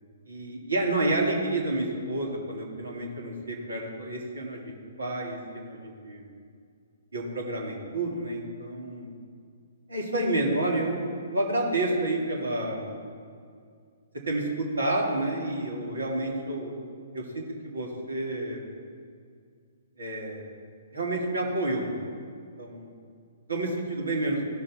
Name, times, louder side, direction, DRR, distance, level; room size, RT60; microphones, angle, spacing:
voice 1, 0.3-6.2 7.1-9.1 9.9-12.9 14.3-16.7 17.1-17.4 17.7-18.6 20.0-20.4 20.9-22.0 22.6-22.9 23.5-24.4, right 2 dB, 75° right, -1 dB, 2.4 m, -29 dB
16.0 x 6.7 x 4.2 m, 2.2 s
figure-of-eight pair, 125°, 0 cm